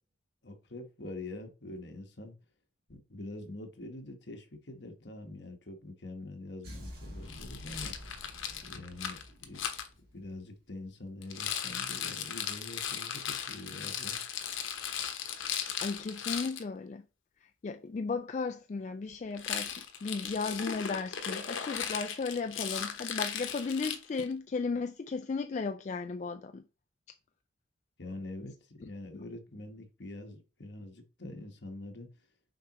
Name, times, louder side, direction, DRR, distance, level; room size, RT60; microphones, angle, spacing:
voice 1, 0.4-2.3 2.9-7.9 8.6-9.7 10.1-14.2 28.0-32.1, left 2 dB, 60° left, 1.2 m, -45 dB
sound 1, 6.6-10.7, equal, 55° right, 2.2 m, -48 dB
Rattle, 7.3-9.9 11.2-16.6 19.3-24.3, left 8 dB, 85° left, 0.9 m, -37 dB
voice 2, 15.4-17.0 17.6-26.6 29.1-29.2, left 4 dB, 35° left, 0.3 m, -35 dB
6.6 x 4.7 x 3.0 m
head